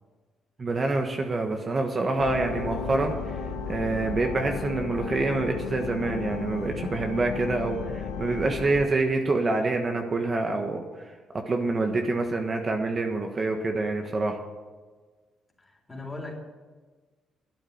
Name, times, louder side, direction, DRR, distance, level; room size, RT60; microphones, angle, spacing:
voice 1, 0.6-3.4 3.7-11.1 11.5-14.4, right 3 dB, 35° right, 3 dB, 1.5 m, -27 dB
sound 1, 2.2-8.9, left 6 dB, 85° left, 1.3 m, -34 dB
voice 2, 15.6-16.3, left 2 dB, 15° left, 0 dB, 3.6 m, -39 dB
12.0 x 8.9 x 8.7 m, 1.4 s
cardioid pair, 90°, 0 cm